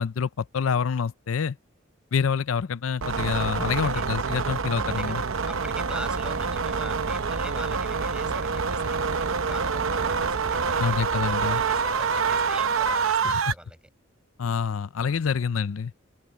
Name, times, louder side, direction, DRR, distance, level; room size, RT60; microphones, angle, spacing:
voice 1, 0.0-1.6 2.1-5.2 10.8-11.6 13.2-13.5 14.4-15.9, left 6 dB, 90° left, 0.5 m, -27 dB
sound 1, 3.0-13.5, right 5 dB, 85° right, 0.8 m, -26 dB
voice 2, 4.9-13.8, right 1 dB, 5° right, 5.5 m, -42 dB
open air
head